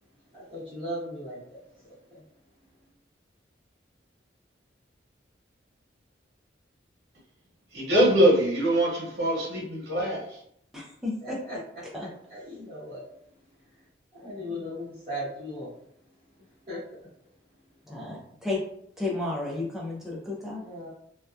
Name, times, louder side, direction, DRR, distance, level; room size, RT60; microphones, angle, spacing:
voice 1, 0.3-2.2 2.8-2.9 11.2-11.6 12.3-13.1 13.6-13.8 14.1-15.8 16.1-17.0 20.5-20.9, equal, 25° right, -15 dB, 1.1 m, -38 dB
voice 2, 7.7-10.4, right 1 dB, 60° right, -4 dB, 1.1 m, -23 dB
voice 3, 10.7-11.4 11.9-12.1 14.4-14.7 17.8-18.6 19.0-20.6, left 2 dB, ahead, -4 dB, 0.5 m, -33 dB
2.7 x 2.2 x 2.3 m, 0.69 s
head